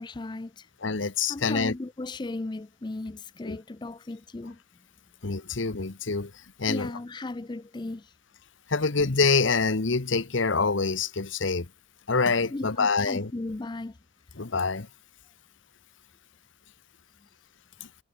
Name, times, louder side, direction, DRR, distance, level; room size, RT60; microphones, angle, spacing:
voice 1, 0.0-0.7 1.3-4.6 6.7-8.2 12.5-14.0 17.2-17.3, left 2 dB, 20° left, 0.4 m, -36 dB
voice 2, 0.8-1.7 3.4-3.6 5.2-6.3 6.6-6.9 8.7-11.7 12.1-13.3 14.4-14.9 17.8-17.9, left 4 dB, 65° left, 1.1 m, -26 dB
head